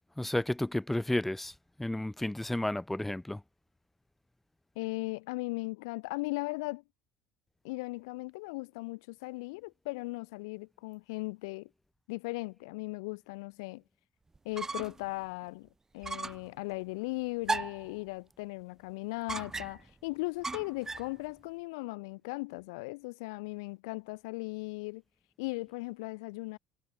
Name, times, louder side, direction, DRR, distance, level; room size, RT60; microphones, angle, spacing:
voice 1, 0.2-3.4, left 1 dB, 5° left, 5.1 m, -32 dB
voice 2, 4.8-6.8 7.6-11.7 12.1-13.8 14.5-15.7 15.9-25.0 25.4-26.6, left 25 dB, 75° left, 2.0 m, -38 dB
sound 1, 14.4-15.1 15.4-15.5 16.0-16.5 17.5-17.9 19.3-19.9 20.4-21.1, right 3 dB, 20° right, 2.9 m, -36 dB
hypercardioid pair, 75°, 3 cm